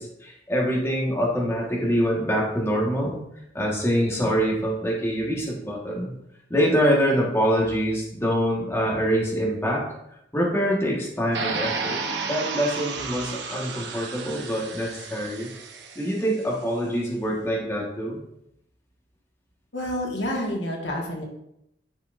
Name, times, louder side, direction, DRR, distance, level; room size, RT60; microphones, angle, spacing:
voice 1, 0.0-3.2 3.5-6.1 6.5-9.8 10.3-15.5 16.0-18.2, equal, 15° left, -3 dB, 1.6 m, -25 dB
sound 1, 11.3-16.3, right 4 dB, 80° right, 1.0 m, -32 dB
voice 2, 19.7-21.2, left 1 dB, 85° left, -1 dB, 1.7 m, -28 dB
10.5 x 5.8 x 2.6 m, 0.80 s
head